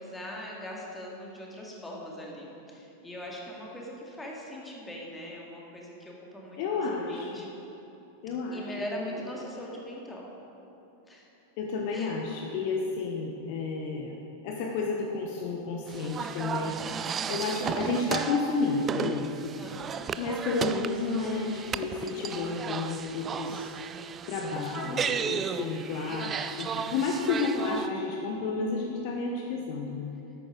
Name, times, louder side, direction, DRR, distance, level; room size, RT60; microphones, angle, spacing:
voice 1, 0.0-7.5 8.5-10.3 11.1-11.3 11.9-12.1 19.6-19.9 23.5-23.7 24.8-25.5, equal, 10° left, -3 dB, 2.1 m, -41 dB
voice 2, 6.6-7.5 8.2-9.2 11.6-19.5 20.2-23.7 24.3-30.1, left 4 dB, 45° left, 1 dB, 1.0 m, -31 dB
sound 1, 15.9-27.9, right 7 dB, 25° right, 0.4 m, -34 dB
13.0 x 10.5 x 3.8 m, 3.0 s
figure-of-eight pair, 90°, 0 cm